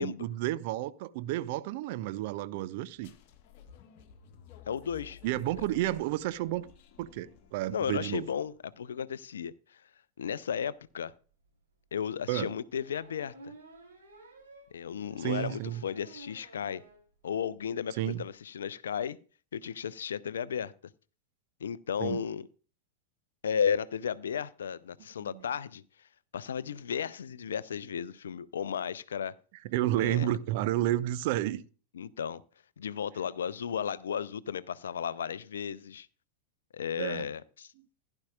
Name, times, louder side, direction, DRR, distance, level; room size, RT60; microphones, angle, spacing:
voice 1, 0.0-3.1 5.2-6.7 7.0-8.3 12.3-12.5 15.2-15.8 18.0-18.2 22.0-22.2 25.3-25.4 29.6-31.6 37.0-37.3, right 14 dB, 50° right, 0.5 m, -31 dB
sound 1, 3.0-8.5, left 7 dB, 45° left, 1.3 m, -53 dB
voice 2, 4.7-5.2 7.7-9.8 10.2-11.1 11.9-13.5 14.7-16.8 17.2-19.2 19.5-20.7 21.6-22.5 23.4-25.8 26.3-29.3 30.0-30.3 31.9-32.4 32.8-36.1 36.7-37.7, left 7 dB, 65° left, 0.5 m, -34 dB
sound 2, 11.4-11.5 12.7-17.0 17.4-17.5 17.8-17.9 18.1-18.3, right 2 dB, 70° right, 3.8 m, -53 dB
15.5 x 11.0 x 2.4 m
figure-of-eight pair, 90°, 0 cm